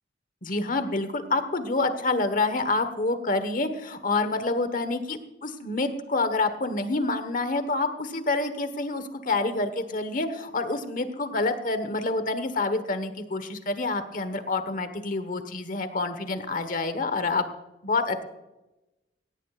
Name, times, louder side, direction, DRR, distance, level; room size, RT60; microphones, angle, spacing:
voice 1, 0.4-17.4 17.8-18.2, left 3 dB, 50° left, 10 dB, 1.2 m, -27 dB
17.5 x 16.0 x 2.5 m, 1.0 s
head